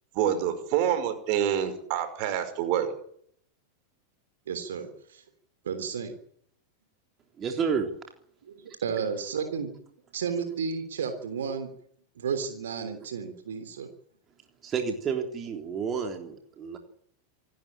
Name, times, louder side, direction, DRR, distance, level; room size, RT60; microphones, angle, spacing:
voice 1, 0.1-2.9, right 9 dB, 45° right, 10 dB, 5.5 m, -27 dB
voice 2, 4.5-5.2 5.6-6.1 8.5-8.6 8.8-9.7 10.1-11.7 12.2-13.9, right 6 dB, 65° right, 8 dB, 3.3 m, -32 dB
voice 3, 7.4-7.9 14.6-16.8, right 6 dB, 25° right, 4 dB, 3.5 m, -30 dB
27.0 x 13.0 x 8.9 m, 0.65 s
figure-of-eight pair, 90°, 0 cm